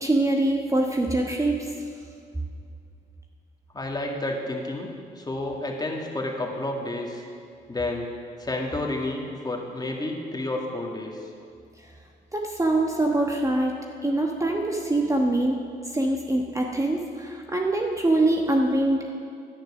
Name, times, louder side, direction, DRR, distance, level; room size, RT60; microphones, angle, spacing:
voice 1, 0.0-1.7 12.3-15.6 15.9-19.1, right 2 dB, 15° right, 1 dB, 1.2 m, -24 dB
voice 2, 3.7-4.9 5.2-7.2 7.7-8.1 8.4-11.2, left 2 dB, 20° left, 0 dB, 2.1 m, -30 dB
10.5 x 9.6 x 6.1 m, 2.4 s
supercardioid pair, 55°, 19 cm